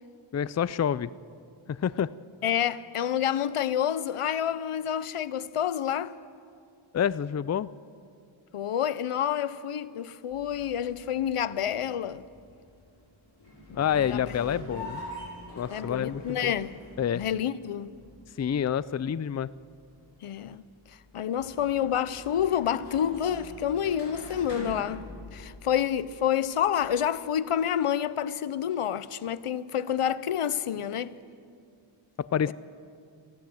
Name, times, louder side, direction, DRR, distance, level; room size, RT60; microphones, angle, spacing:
voice 1, 0.3-1.1 1.7-2.1 6.9-7.7 13.8-15.0 15.6-16.5 17.0-17.2 18.4-19.5 32.2-32.5, left 8 dB, 35° left, 0.4 m, -28 dB
voice 2, 2.4-6.2 8.5-12.2 13.7-14.9 15.7-16.8 17.1-18.0 20.2-20.6 20.9-31.1 32.4-32.5, left 9 dB, 85° left, 0.7 m, -29 dB
sound 1, 10.3-27.4, left 1 dB, 55° left, 7.1 m, -45 dB
23.5 x 15.5 x 7.8 m
wide cardioid pair, 65°, 50 cm